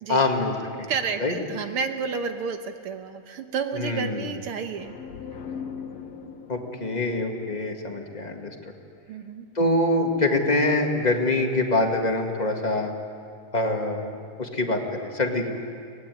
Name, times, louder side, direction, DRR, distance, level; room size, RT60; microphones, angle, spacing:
voice 1, 0.1-0.5 0.8-0.9 1.2-1.3 3.7-4.3 6.5-8.5 9.5-12.9 13.5-15.5, left 2 dB, 20° left, 2 dB, 1.2 m, -25 dB
voice 2, 0.9-5.0 9.1-9.5, right 6 dB, 60° right, 7 dB, 1.5 m, -31 dB
sound 1, 4.7-8.4, left 6 dB, 60° left, 2.5 m, -40 dB
23.5 x 19.0 x 9.2 m, 2.3 s
omnidirectional pair, 3.6 m